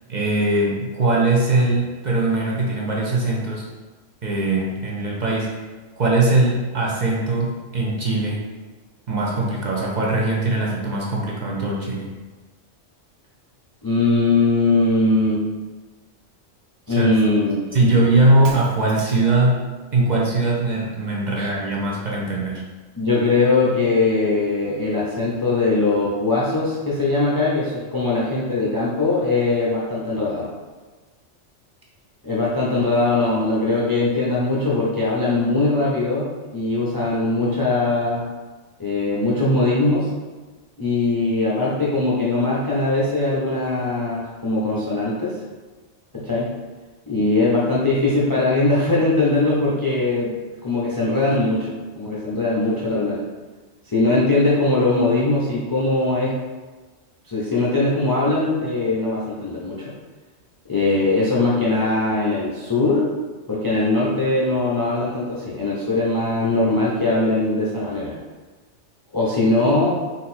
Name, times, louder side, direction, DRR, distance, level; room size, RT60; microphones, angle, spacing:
voice 1, 0.1-3.7 4.2-5.5 6.0-8.4 9.1-12.1 17.0-17.1 17.7-19.6 19.9-22.6, right 2 dB, 45° right, -4 dB, 0.6 m, -20 dB
voice 2, 13.8-15.4 16.9-18.2 21.4-21.5 23.0-30.5 32.2-38.2 38.8-40.1 40.8-45.3 46.1-46.5 47.1-51.7 52.0-53.2 53.9-56.3 57.3-59.9 60.7-63.1 63.5-68.2 69.1-70.0, left 2 dB, 25° left, -7 dB, 0.5 m, -21 dB
Shatter, 18.4-19.4, right 4 dB, 75° right, 0.9 m, -39 dB
4.0 x 2.6 x 4.2 m, 1.3 s
omnidirectional pair, 1.3 m